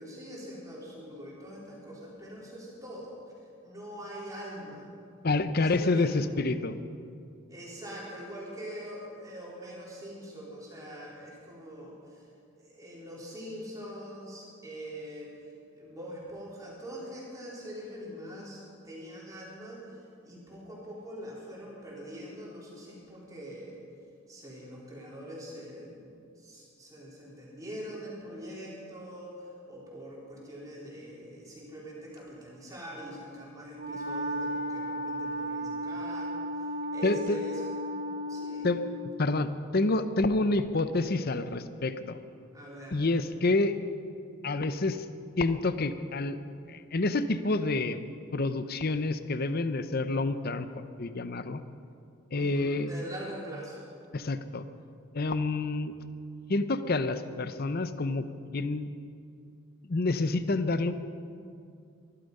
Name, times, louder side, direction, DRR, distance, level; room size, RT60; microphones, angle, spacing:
voice 1, 0.0-3.2 3.6-4.9 5.6-6.3 7.5-12.2 12.6-15.3 15.7-19.9 20.2-23.8 24.3-26.0 26.4-36.3 36.9-37.7 38.3-38.7 42.5-43.0 52.3-53.8, equal, 15° right, -5 dB, 3.7 m, -43 dB
voice 2, 5.2-6.8 37.0-37.4 38.6-38.8 39.2-42.2 42.9-43.7 44.4-45.0 45.4-46.4 46.7-48.0 48.3-50.7 51.0-51.6 52.3-52.9 54.1-54.6 55.1-55.9 56.5-58.3 58.5-58.9 59.9-60.9, left 2 dB, 45° left, 11 dB, 0.7 m, -28 dB
Wind instrument woodwind instrument, 33.7-39.1, equal, 40° right, 1.2 m, -34 dB
23.0 x 11.5 x 5.4 m, 2.4 s
head